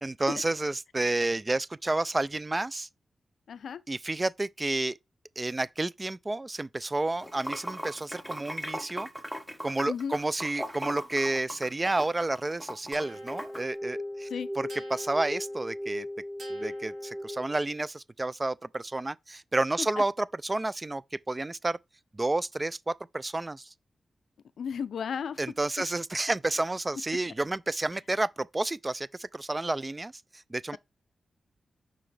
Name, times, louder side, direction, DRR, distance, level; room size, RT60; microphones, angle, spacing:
voice 1, 0.0-2.9 3.9-5.0 5.4-9.1 9.6-14.3 14.6-16.1 16.5-21.8 22.1-23.7 25.4-30.8, right 2 dB, 25° right, 0.3 m, -30 dB
voice 2, 3.5-3.8 9.9-10.2 14.3-14.5 24.6-25.4, left 7 dB, 90° left, 0.3 m, -33 dB
Water / Sink (filling or washing), 7.1-13.6, equal, ahead, 1.1 m, -38 dB
sound 1, 12.9-17.7, left 1 dB, 85° right, 2.4 m, -37 dB
5.6 x 5.1 x 3.3 m
cardioid pair, 70°, 0 cm